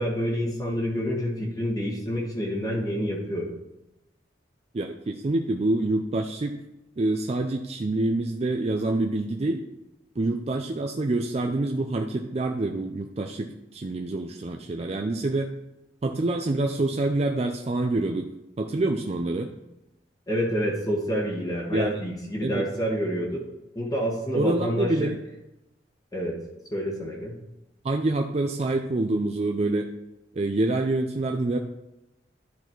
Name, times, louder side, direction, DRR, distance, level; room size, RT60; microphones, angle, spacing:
voice 1, 0.0-3.5 20.3-23.4 23.7-25.1 26.1-26.4 26.7-27.3, equal, 20° left, -2 dB, 1.3 m, -28 dB
voice 2, 4.7-6.6 7.0-9.6 10.2-15.5 16.0-18.3 18.6-19.5 21.7-22.0 22.4-22.6 24.4-25.2 27.8-29.9 30.3-31.6, right 2 dB, 35° right, 4 dB, 0.4 m, -26 dB
10.5 x 4.2 x 4.5 m, 0.93 s
head